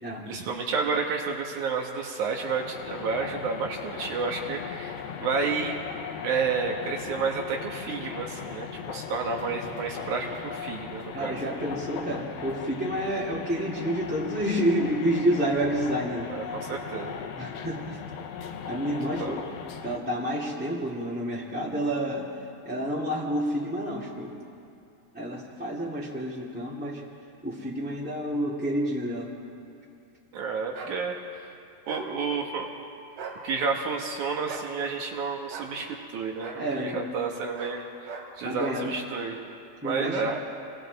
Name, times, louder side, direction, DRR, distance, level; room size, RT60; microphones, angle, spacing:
voice 1, 0.3-5.8 6.2-11.4 16.3-17.2 18.9-19.3 30.3-31.2 31.9-32.7 33.4-37.8 38.4-39.4 39.8-40.4, right 5 dB, 65° right, 1 dB, 2.5 m, -30 dB
sound 1, 2.2-20.0, left 7 dB, 80° left, 2.8 m, -38 dB
voice 2, 11.1-16.3 17.3-18.0 18.6-19.4 19.8-22.2 22.6-24.3 25.1-27.0 27.4-29.3 36.5-37.1 38.4-38.9 39.8-40.4, right 1 dB, 5° right, -7 dB, 1.7 m, -29 dB
sound 2, 30.7-31.0 31.9-32.1 33.1-33.4 34.5-34.7 35.5-35.7 36.4-36.6 37.5-37.8 38.0-38.3 38.6-38.8, right 5 dB, 85° right, 4.2 m, -39 dB
29.5 x 23.0 x 4.1 m, 2.6 s
omnidirectional pair, 4.2 m